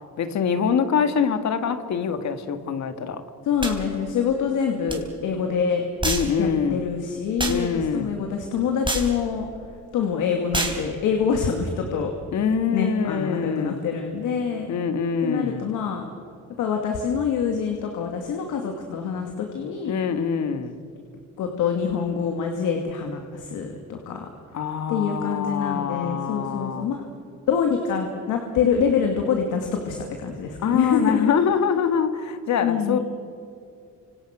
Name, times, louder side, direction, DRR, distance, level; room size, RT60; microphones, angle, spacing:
voice 1, 0.2-3.2 6.0-6.9 7.5-8.2 12.3-13.9 14.7-15.7 19.9-20.8 24.5-26.9 30.6-33.0, left 6 dB, 65° left, 9 dB, 1.9 m, -24 dB
voice 2, 3.4-5.8 6.4-9.5 9.9-12.1 12.7-14.7 15.2-16.0 16.6-19.9 21.4-24.3 24.9-27.0 27.5-31.3 32.6-33.0, left 6 dB, 90° left, 3 dB, 2.5 m, -25 dB
sound 1, 3.6-3.8 4.9-5.0 6.0-6.3 7.4-7.6 8.8-9.1 10.5-10.8, right 2 dB, 15° right, 4.0 m, -26 dB
30.0 x 26.5 x 6.1 m, 2.5 s
cardioid pair, 90°, 30 cm